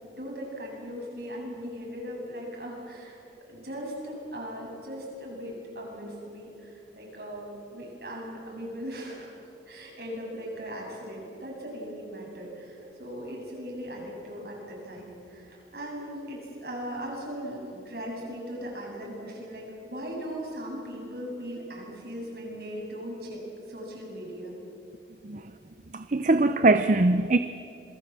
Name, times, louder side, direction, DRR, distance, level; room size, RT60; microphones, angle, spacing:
voice 1, 0.0-3.2 3.5-9.3 9.7-23.4 23.7-24.6, equal, 65° right, 7.8 m, -38 dB
voice 2, 25.9-27.4, right 2 dB, 45° right, 0.6 m, -21 dB
27.0 x 22.0 x 7.5 m
head